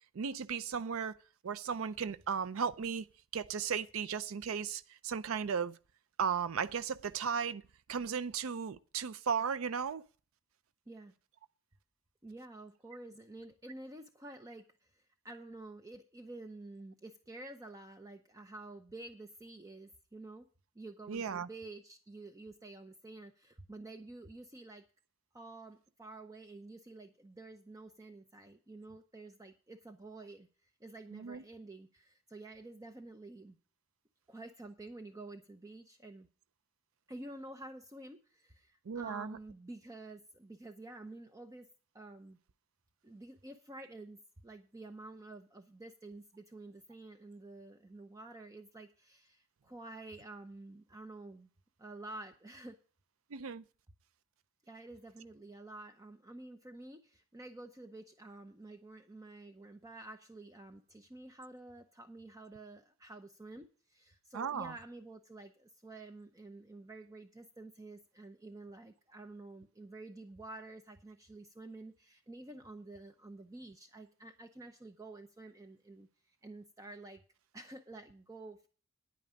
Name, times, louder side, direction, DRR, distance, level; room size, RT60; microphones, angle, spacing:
voice 1, 0.1-1.2 1.4-3.0 3.3-5.8 6.2-7.6 7.9-10.0 21.1-21.5 31.1-31.4 38.9-39.4 53.3-53.6 64.3-64.7, right 6 dB, 75° right, 0.5 m, -35 dB
voice 2, 12.2-20.5 20.7-24.8 25.3-33.6 34.3-36.3 37.1-41.7 41.9-42.4 43.0-51.5 51.8-52.8 54.7-77.2 77.5-78.7, right 2 dB, 15° right, 0.6 m, -50 dB
9.9 x 9.1 x 5.0 m
head